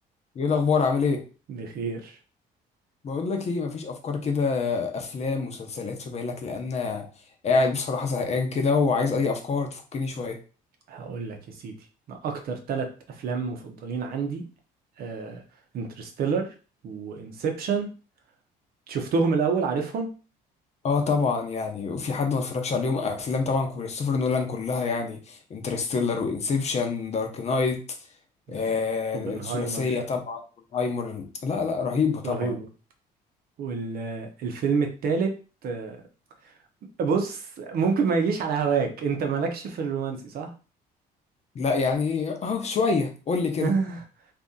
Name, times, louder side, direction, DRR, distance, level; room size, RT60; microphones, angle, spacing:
voice 1, 0.3-1.2 3.0-7.1 7.4-10.4 20.8-27.8 28.5-30.4 30.7-32.5 41.5-43.7, left 4 dB, 40° left, 3 dB, 0.8 m, -26 dB
voice 2, 1.5-2.2 10.9-11.7 12.1-14.4 15.0-15.4 15.7-16.5 16.8-17.9 18.9-20.1 28.5-28.6 29.1-29.9 32.2-32.7 33.6-35.3 35.6-36.0 37.0-40.5 43.6-44.0, right 5 dB, 65° right, 4 dB, 0.8 m, -28 dB
2.8 x 2.6 x 3.7 m, 0.35 s
cardioid pair, 110°, 17 cm